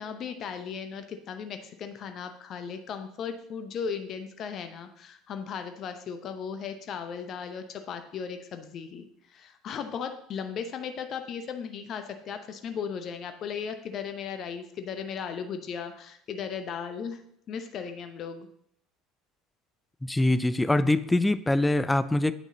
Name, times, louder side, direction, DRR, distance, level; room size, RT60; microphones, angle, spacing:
voice 1, 0.0-17.2 17.5-18.5, left 6 dB, 45° left, 8 dB, 0.8 m, -36 dB
voice 2, 20.0-22.3, left 1 dB, 10° left, 14 dB, 0.4 m, -24 dB
8.9 x 6.0 x 4.0 m, 0.70 s
figure-of-eight pair, 60°, 0 cm